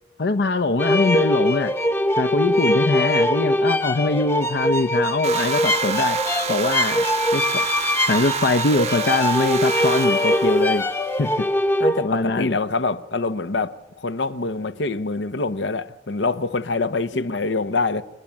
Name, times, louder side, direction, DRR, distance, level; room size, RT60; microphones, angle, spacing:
voice 1, 0.2-1.7 2.2-6.2 6.5-7.0 7.3-7.6 8.1-10.8 11.2-11.5 12.0-12.6 17.1-17.2, left 3 dB, 65° left, 0.7 m, -22 dB
sound 1, 0.8-12.1, left 1 dB, 15° left, 0.8 m, -22 dB
sound 2, 5.2-11.4, right 6 dB, 35° right, 0.9 m, -29 dB
voice 2, 11.8-18.0, left 3 dB, 85° left, 1.0 m, -25 dB
29.5 x 11.0 x 8.7 m
head